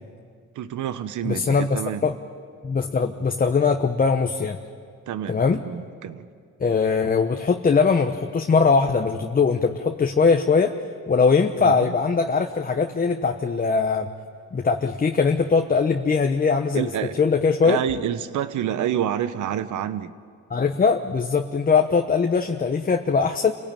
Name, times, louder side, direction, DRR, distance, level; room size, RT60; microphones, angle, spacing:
voice 1, 0.5-2.0 5.1-6.3 11.6-11.9 16.7-17.1 17.6-20.1, right 10 dB, 75° right, 13 dB, 1.1 m, -28 dB
voice 2, 1.2-2.1 2.6-4.6 5.3-5.6 6.6-10.7 11.1-14.1 14.5-16.9 17.2-17.8 20.5-23.5, left 5 dB, 30° left, 5 dB, 1.1 m, -21 dB
27.5 x 17.5 x 9.0 m, 2.2 s
cardioid pair, 90°, 30 cm